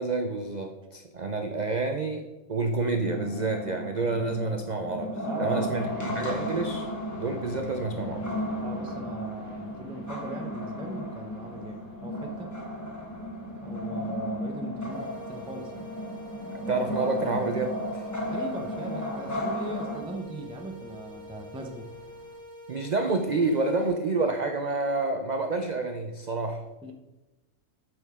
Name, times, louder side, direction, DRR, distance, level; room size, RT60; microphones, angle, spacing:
voice 1, 0.0-2.2 2.5-5.1 5.4-6.9 7.2-8.2 16.5-18.1 22.7-26.6, right 3 dB, 80° right, 5 dB, 0.4 m, -29 dB
sound 1, 2.8-20.0, equal, 15° left, 1.0 m, -34 dB
voice 2, 5.2-5.9 8.6-12.5 13.6-15.9 18.2-21.9 26.8-26.9, right 1 dB, 5° right, 2 dB, 0.4 m, -39 dB
sound 2, 5.6-22.4, left 2 dB, 40° left, 0.9 m, -49 dB
sound 3, 14.9-23.9, left 1 dB, 70° left, 3.8 m, -46 dB
8.6 x 6.3 x 3.6 m, 1.1 s
omnidirectional pair, 1.5 m